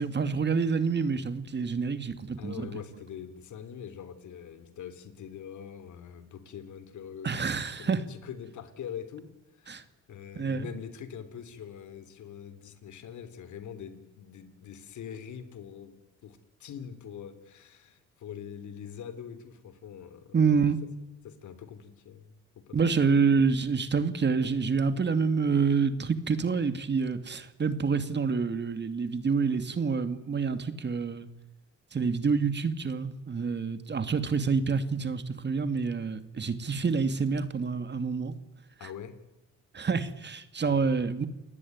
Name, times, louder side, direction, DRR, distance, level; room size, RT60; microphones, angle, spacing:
voice 1, 0.0-2.7 7.2-8.0 9.7-9.8 10.4-10.7 20.3-20.8 22.7-31.3 31.9-38.3 38.8-38.9 39.7-41.3, right 5 dB, 35° right, 10 dB, 2.5 m, -27 dB
voice 2, 2.4-7.3 7.8-9.8 10.1-16.0 16.2-20.7 21.2-23.2 38.8-39.1 40.6-41.0, left 8 dB, 75° left, 11 dB, 3.7 m, -43 dB
29.5 x 19.0 x 9.7 m, 1.0 s
cardioid pair, 90°, 30 cm